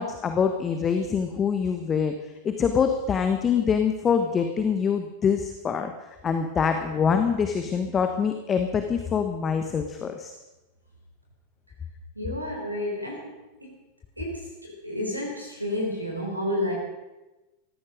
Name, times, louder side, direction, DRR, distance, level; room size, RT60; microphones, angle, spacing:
voice 1, 0.0-10.3, left 6 dB, 25° left, 7 dB, 1.3 m, -25 dB
voice 2, 12.2-13.3 13.6-13.7 14.2-16.7, left 1 dB, 85° right, -1 dB, 3.8 m, -30 dB
18.5 x 15.0 x 5.1 m, 1.1 s
figure-of-eight pair, 90°, 0 cm